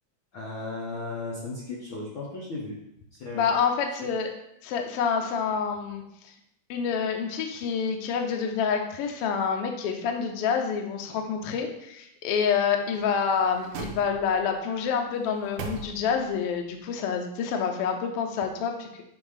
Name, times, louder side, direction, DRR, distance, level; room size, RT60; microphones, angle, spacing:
voice 1, 0.3-2.8 3.1-3.5 4.0-4.1, left 3 dB, 65° left, -6 dB, 1.2 m, -35 dB
voice 2, 3.3-4.3 4.6-6.3 6.7-18.9, left 6 dB, 85° left, 3 dB, 1.3 m, -27 dB
sound 1, 12.8-14.6 15.1-16.4 16.8-16.9, right 5 dB, 75° right, 1.5 m, -41 dB
7.3 x 2.7 x 4.9 m, 0.80 s
omnidirectional pair, 3.6 m